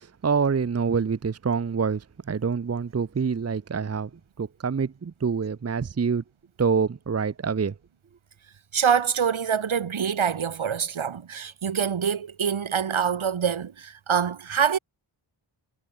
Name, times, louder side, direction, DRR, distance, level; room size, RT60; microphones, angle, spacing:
voice 1, 0.0-4.1 4.4-6.2 6.6-7.7, right 5 dB, 30° right, 0.7 m, -26 dB
voice 2, 8.7-14.8, right 7 dB, 75° right, 2.6 m, -25 dB
wide cardioid pair, 150°, 49 cm